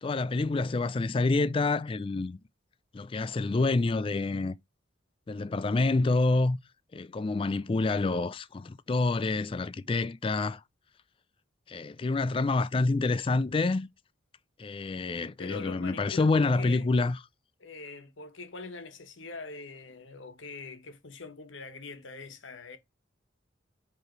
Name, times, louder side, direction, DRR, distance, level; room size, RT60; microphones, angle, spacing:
voice 1, 0.0-2.4 2.9-4.5 5.3-6.6 6.9-10.6 11.7-13.9 14.6-17.2, left 3 dB, 25° left, 0.3 m, -27 dB
voice 2, 15.4-16.9 17.6-22.8, left 4 dB, 75° left, 1.2 m, -43 dB
8.0 x 3.2 x 4.5 m
head